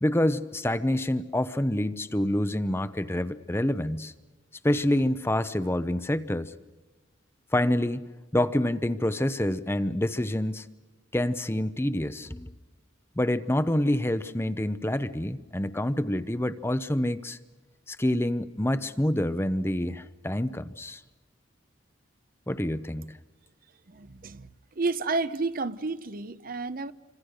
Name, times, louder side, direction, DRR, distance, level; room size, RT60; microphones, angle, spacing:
voice 1, 0.0-4.1 4.6-6.5 7.5-8.0 8.3-10.6 11.1-12.5 13.2-17.4 17.9-21.0 22.5-23.2, left 1 dB, 15° left, 0.7 m, -27 dB
voice 2, 23.9-24.5 24.8-26.9, right 3 dB, 45° right, 0.8 m, -31 dB
27.5 x 25.5 x 6.6 m
head